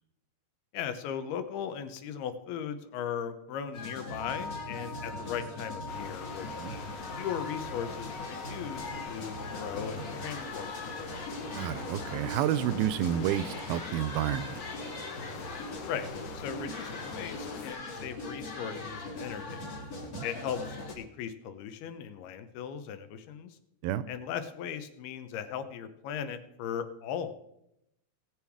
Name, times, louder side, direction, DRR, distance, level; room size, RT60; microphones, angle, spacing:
voice 1, 0.7-10.9 15.9-16.1 16.3-19.7 20.2-23.6 24.1-27.3, left 8 dB, 80° left, 10 dB, 2.8 m, -38 dB
sound 1, 3.7-20.9, left 2 dB, 35° left, 1.7 m, -41 dB
sound 2, 4.2-14.7, left 3 dB, 30° right, 1.6 m, -45 dB
sound 3, 5.9-17.7, left 5 dB, 65° left, 2.0 m, -44 dB
voice 2, 11.5-14.6 20.0-20.3 23.8-24.1, right 11 dB, 80° right, 14 dB, 2.3 m, -30 dB
19.5 x 7.1 x 4.7 m, 0.81 s
omnidirectional pair, 4.5 m